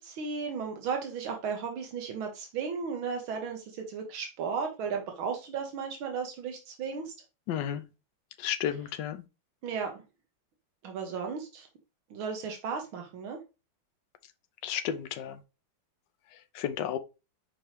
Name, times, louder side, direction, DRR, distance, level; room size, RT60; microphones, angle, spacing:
voice 1, 0.0-7.1 9.6-10.0 10.8-11.7 12.1-13.4, right 6 dB, 85° right, 1.9 m, -35 dB
voice 2, 7.5-7.8 8.4-9.2 14.6-15.4 16.5-17.0, left 9 dB, 70° left, 1.2 m, -32 dB
6.0 x 5.0 x 3.1 m
omnidirectional pair, 2.2 m